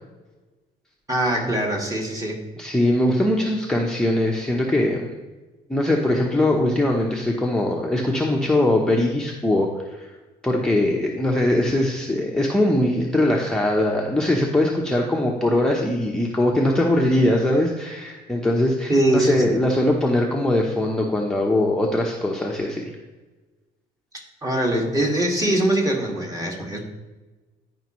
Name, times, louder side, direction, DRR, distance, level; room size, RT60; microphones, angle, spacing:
voice 1, 1.1-2.4 18.9-19.4 24.4-26.8, right 1 dB, 20° right, 0 dB, 2.0 m, -22 dB
voice 2, 2.6-5.1 5.7-10.1 10.4-22.8, left 1 dB, 5° left, -1 dB, 0.9 m, -21 dB
13.0 x 5.1 x 3.1 m, 1.2 s
cardioid pair, 110°, 17 cm